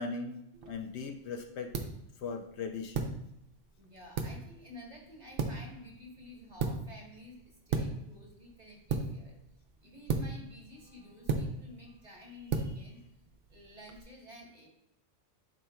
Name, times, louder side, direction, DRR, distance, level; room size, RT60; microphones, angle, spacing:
voice 1, 0.0-1.7 2.2-3.1, left 4 dB, 70° left, 5 dB, 0.8 m, -39 dB
sound 1, 0.5-14.0, right 4 dB, 55° right, 0.8 m, -38 dB
voice 2, 3.8-9.4 9.8-13.1 13.5-14.7, left 1 dB, 35° right, -1 dB, 1.4 m, -51 dB
10.5 x 4.3 x 2.3 m, 0.81 s
omnidirectional pair, 1.2 m